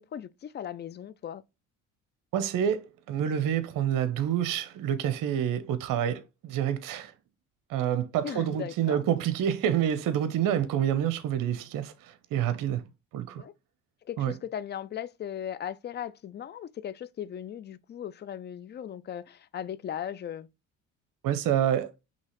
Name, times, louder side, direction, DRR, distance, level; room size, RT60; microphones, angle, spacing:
voice 1, 0.0-1.4 8.2-9.0 13.4-13.5 14.1-20.5, left 9 dB, 30° left, 0.4 m, -38 dB
voice 2, 2.3-7.1 7.7-12.8 13.1-13.4 14.2-14.3 21.2-21.9, right 10 dB, 55° right, 0.7 m, -28 dB
5.4 x 2.9 x 3.0 m
supercardioid pair, 65°, 38 cm